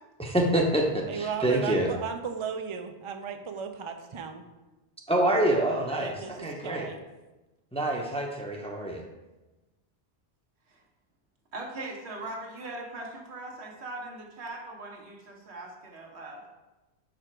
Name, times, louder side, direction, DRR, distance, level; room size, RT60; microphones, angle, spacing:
voice 1, 0.2-1.9 5.1-6.1 6.4-6.9 7.7-9.0, right 1 dB, 5° left, 0 dB, 0.6 m, -26 dB
voice 2, 1.1-4.4 6.0-7.0, right 6 dB, 50° right, 6 dB, 0.3 m, -35 dB
voice 3, 11.5-16.4, right 2 dB, 80° right, 0 dB, 1.3 m, -40 dB
4.9 x 4.9 x 4.4 m, 1.1 s
omnidirectional pair, 1.1 m